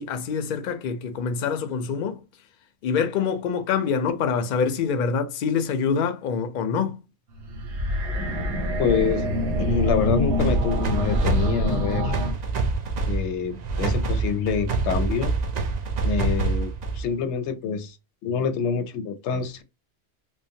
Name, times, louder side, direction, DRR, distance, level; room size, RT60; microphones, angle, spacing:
voice 1, 0.0-2.2 2.8-7.0, left 6 dB, 55° left, 0.6 m, -25 dB
sound 1, 7.4-12.3, left 1 dB, 85° right, 1.2 m, -25 dB
voice 2, 8.8-9.3 9.6-12.2 13.0-15.3 16.0-18.0 18.2-19.6, left 6 dB, 85° left, 0.9 m, -26 dB
sound 2, 10.4-17.2, right 4 dB, 55° right, 0.5 m, -26 dB
3.0 x 2.0 x 2.6 m
omnidirectional pair, 1.1 m